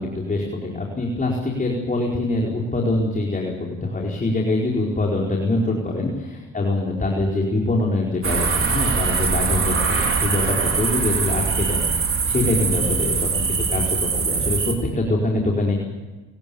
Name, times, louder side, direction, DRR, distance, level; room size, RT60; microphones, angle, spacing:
voice 1, 0.0-15.7, left 2 dB, 25° left, -1 dB, 4.8 m, -24 dB
sound 1, 8.2-14.7, right 5 dB, 45° right, 4.7 m, -22 dB
29.0 x 18.0 x 7.1 m, 1.2 s
cardioid pair, 90°, 30 cm